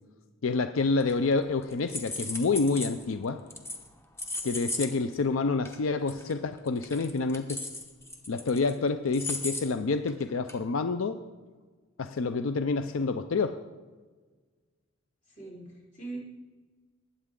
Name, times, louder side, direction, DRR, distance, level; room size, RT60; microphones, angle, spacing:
voice 1, 0.4-3.4 4.4-7.6 8.3-11.2 12.0-13.6, left 4 dB, 80° left, 9 dB, 0.5 m, -28 dB
sound 1, 1.0-1.4 1.7-3.0 3.5-3.9 4.2-4.9 5.1-5.2 5.7-5.8 6.1-6.3 6.7-8.7 9.1-9.6 10.1-10.2 10.5-10.6, left 2 dB, 15° left, 0.9 m, -36 dB
voice 2, 15.3-16.2, right 3 dB, 35° left, -5 dB, 3.9 m, -41 dB
20.0 x 8.5 x 3.7 m, 1.4 s
head